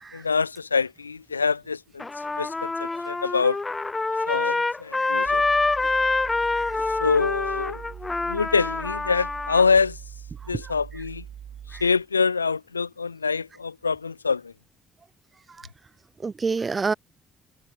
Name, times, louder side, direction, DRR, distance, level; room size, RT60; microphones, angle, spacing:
voice 1, 0.1-2.0 2.4-3.6 4.3-5.4 7.0-7.8 8.3-10.0 10.5-11.2 11.8-14.5, left 5 dB, 85° left, 0.5 m, -25 dB
Trumpet, 2.0-9.6, left 3 dB, 20° left, 0.5 m, -26 dB
sound 1, 5.2-12.0, right 9 dB, 50° right, 5.8 m, -42 dB
voice 2, 16.2-16.9, right 4 dB, 30° right, 0.8 m, -28 dB
figure-of-eight pair, 45°, 0 cm